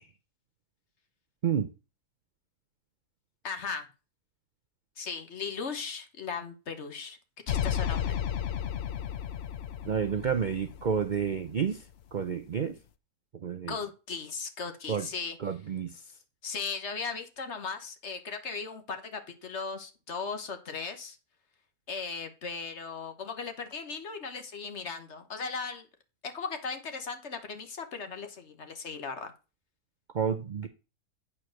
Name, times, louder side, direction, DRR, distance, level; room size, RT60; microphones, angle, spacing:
voice 1, 3.4-3.9 5.0-7.2 7.5-8.2 13.7-15.4 16.4-21.2 21.9-25.9 26.2-29.3, left 5 dB, 50° left, 1.3 m, -37 dB
sound 1, 7.5-11.7, left 9 dB, 65° left, 0.6 m, -33 dB
voice 2, 9.8-11.8 12.1-12.7 13.4-13.7 14.9-15.1 15.4-15.9 30.1-30.7, right 7 dB, 85° right, 0.4 m, -30 dB
8.8 x 4.5 x 6.4 m
omnidirectional pair, 1.7 m